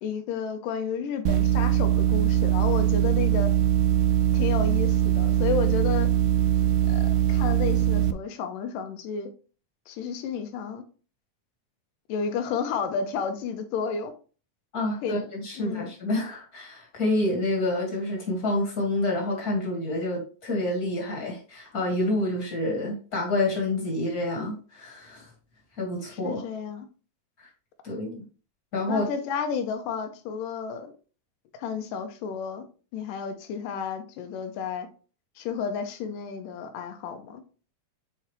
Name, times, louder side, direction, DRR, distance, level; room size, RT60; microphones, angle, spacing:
voice 1, 0.0-3.5 4.3-6.1 6.9-9.3 9.9-10.8 12.1-14.1 15.0-15.2 15.6-15.9 26.1-26.9 28.9-30.9 31.5-32.7 32.9-34.9 35.4-37.4, left 6 dB, 80° left, 2.4 m, -32 dB
sound 1, 1.3-8.1, right 13 dB, 80° right, 1.9 m, -22 dB
voice 2, 14.7-25.3 25.8-26.4 27.8-28.2 28.7-29.0, left 2 dB, 35° left, 1.8 m, -28 dB
6.9 x 4.4 x 3.2 m
omnidirectional pair, 3.9 m